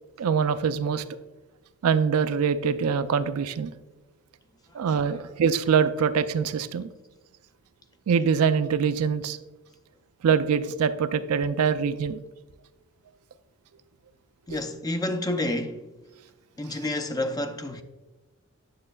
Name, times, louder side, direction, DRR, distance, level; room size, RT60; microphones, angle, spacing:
voice 1, 0.2-1.0 1.8-3.7 4.7-6.9 8.1-9.4 10.2-12.2 14.5-14.6, right 6 dB, 75° right, 0.4 m, -24 dB
voice 2, 14.5-15.9 16.6-17.8, left 1 dB, 15° left, 0.4 m, -29 dB
8.7 x 7.1 x 2.3 m
head